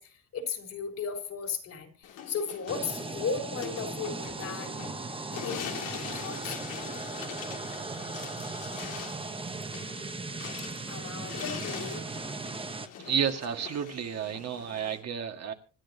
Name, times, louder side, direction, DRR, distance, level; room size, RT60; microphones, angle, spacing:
voice 1, 0.0-4.8 5.4-6.6 10.9-12.0, left 5 dB, 55° left, 6 dB, 4.0 m, -36 dB
sound 1, 2.0-15.0, left 9 dB, 80° left, 2.6 m, -43 dB
sound 2, 2.7-12.9, right 3 dB, 15° right, 1.0 m, -38 dB
voice 2, 13.0-15.5, right 7 dB, 55° right, 4 dB, 1.9 m, -31 dB
26.0 x 10.5 x 2.8 m, 0.36 s
cardioid pair, 100°, 31 cm